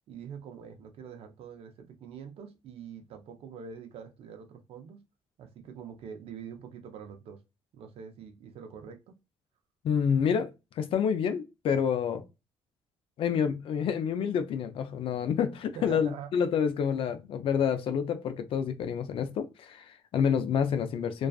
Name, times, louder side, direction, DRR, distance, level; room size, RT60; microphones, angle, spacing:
voice 1, 0.1-5.0 5.4-7.4 7.7-9.1 15.7-16.3, right 7 dB, 70° right, 0.5 m, -44 dB
voice 2, 9.8-12.2 13.2-21.3, left 7 dB, 60° left, 0.4 m, -28 dB
2.3 x 2.3 x 2.4 m
cardioid pair, 85°, 10 cm